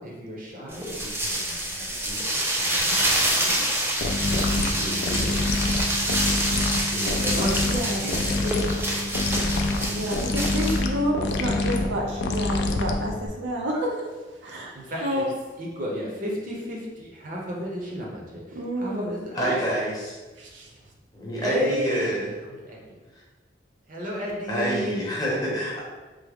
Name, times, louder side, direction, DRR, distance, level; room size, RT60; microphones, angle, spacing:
voice 1, 0.0-3.0 3.4-3.6 4.3-5.3 6.0-6.4 6.8-7.7 8.0-8.8 10.0-10.1 14.9-15.2 15.6-18.4 18.8-19.6 21.4-22.9 23.9-25.0, equal, 45° right, -3 dB, 0.7 m, -33 dB
sound 1, 0.7-10.8, right 1 dB, 10° right, 0.4 m, -27 dB
sound 2, 4.0-13.3, left 2 dB, 65° left, 0.3 m, -26 dB
voice 2, 7.7-8.1 9.8-14.1 14.4-15.3 18.5-19.2 20.4-20.7, equal, 80° right, 0 dB, 0.5 m, -29 dB
voice 3, 19.3-20.2 21.1-22.4 24.5-25.8, equal, 20° left, -5 dB, 0.8 m, -27 dB
3.4 x 2.0 x 3.4 m, 1.3 s
head